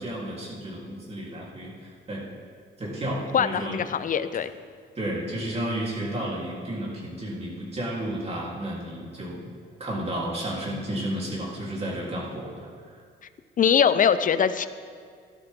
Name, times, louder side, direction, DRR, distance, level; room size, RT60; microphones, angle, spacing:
voice 1, 0.0-1.7 2.1-2.3 2.8-3.8 5.0-9.5 9.8-12.7, right 1 dB, 30° right, -5 dB, 3.6 m, -32 dB
voice 2, 3.3-4.5 13.6-14.7, left 7 dB, 40° left, 13 dB, 0.6 m, -22 dB
13.5 x 11.5 x 3.8 m, 2.1 s
cardioid pair, 90°, 20 cm